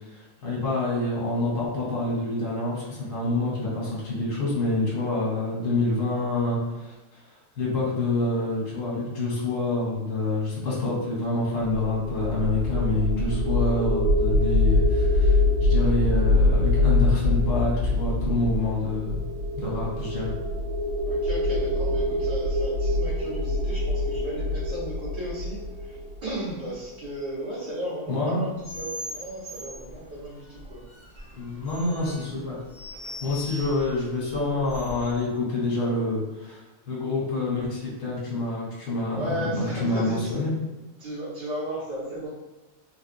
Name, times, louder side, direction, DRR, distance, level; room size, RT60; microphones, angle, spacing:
voice 1, 0.1-6.9 7.6-19.2 19.6-20.3 28.1-28.5 31.3-32.6 33.2-36.6 36.9-40.5, left 2 dB, 60° left, -6 dB, 1.6 m, -27 dB
sound 1, 11.6-26.7, left 2 dB, 90° right, 1.6 m, -24 dB
voice 2, 21.0-30.8 39.1-40.4 41.0-42.3, equal, 65° right, -13 dB, 1.8 m, -35 dB
sound 2, 28.6-35.2, equal, 30° right, 0.9 m, -41 dB
3.9 x 2.4 x 2.6 m, 1.1 s
omnidirectional pair, 2.0 m